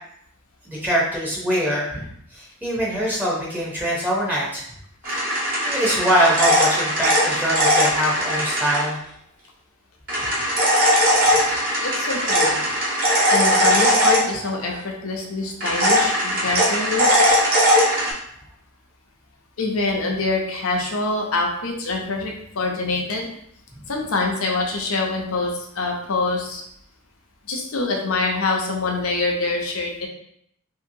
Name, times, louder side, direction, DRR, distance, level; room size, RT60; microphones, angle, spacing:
voice 1, 0.7-2.1 2.3-4.6 5.6-9.0, equal, 10° right, -6 dB, 0.7 m, -23 dB
sound 1, 5.0-8.8 10.1-14.7 15.6-18.1, equal, 45° right, 1.1 m, -19 dB
voice 2, 11.8-12.6 13.3-17.2 19.6-23.3 23.9-26.6 27.5-30.1, left 3 dB, 75° left, 1 dB, 0.6 m, -25 dB
3.0 x 2.8 x 2.6 m, 0.70 s
head